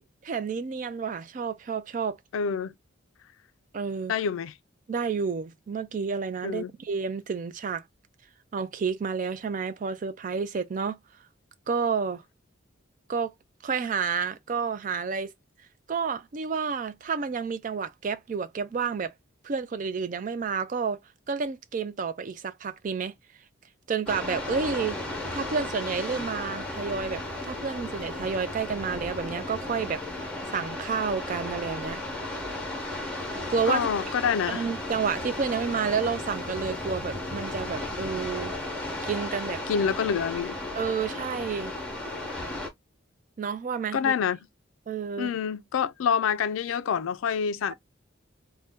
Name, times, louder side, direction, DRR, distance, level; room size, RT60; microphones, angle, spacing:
voice 1, 0.0-2.2 3.7-4.1 4.9-7.8 8.5-11.0 11.7-12.2 13.1-13.3 13.6-15.3 15.9-19.1 19.4-21.0 21.3-23.1 23.9-25.0 25.3-30.0 30.5-32.0 33.5-33.9 34.5-38.5 39.0-39.6 40.7-41.7 43.4-44.1 44.9-45.3, right 5 dB, 40° right, 0.3 m, -30 dB
voice 2, 2.3-2.7 4.1-4.5 6.4-6.7 33.7-34.6 39.7-40.6 43.9-44.4 45.2-47.7, left 7 dB, 80° left, 0.4 m, -27 dB
sound 1, 24.1-42.7, left 2 dB, 5° left, 0.8 m, -35 dB
2.6 x 2.1 x 3.5 m
head